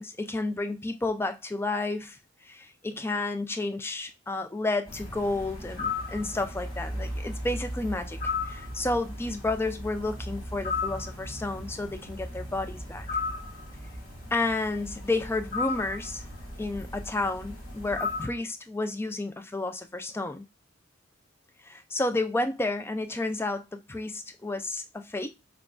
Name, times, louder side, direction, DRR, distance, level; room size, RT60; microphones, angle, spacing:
voice 1, 0.0-2.2 2.4-13.1 14.3-16.3 16.6-20.5 21.6-25.3, left 2 dB, 10° left, 0.3 m, -31 dB
sound 1, 4.9-18.3, left 3 dB, 45° left, 1.8 m, -36 dB
5.8 x 2.3 x 2.4 m
head